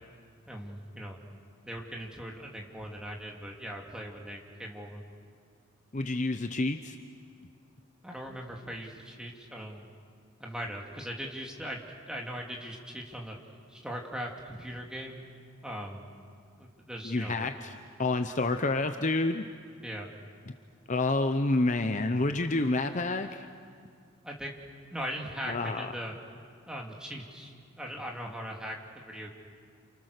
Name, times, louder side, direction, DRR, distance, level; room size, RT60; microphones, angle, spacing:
voice 1, 0.5-1.2 1.6-5.0 8.0-9.9 10.4-13.4 13.7-15.2 15.6-16.1 16.6-17.5 19.8-20.1 24.2-24.6 24.9-26.1 26.7-29.3, equal, 5° right, -1 dB, 2.6 m, -40 dB
voice 2, 5.9-7.0 17.0-17.7 18.0-19.5 20.9-23.5 25.5-25.9, left 2 dB, 35° left, 8 dB, 0.7 m, -28 dB
29.5 x 28.5 x 6.7 m, 2.2 s
head